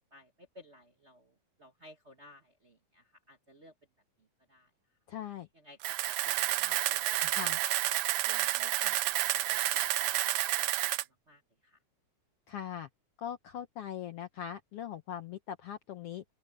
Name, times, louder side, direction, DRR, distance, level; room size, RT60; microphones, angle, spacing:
voice 1, 0.0-1.3 1.6-3.7 4.5-4.7 5.5-7.3 8.2-9.0 9.3-10.8 11.3-11.8, equal, 35° right, 1.1 m, -55 dB
voice 2, 5.1-5.5 7.2-7.6 12.5-12.9 13.2-16.2, left 10 dB, 70° left, 1.4 m, -41 dB
Camera, 5.8-11.0, right 15 dB, 75° right, 1.8 m, -30 dB
open air
omnidirectional pair, 3.6 m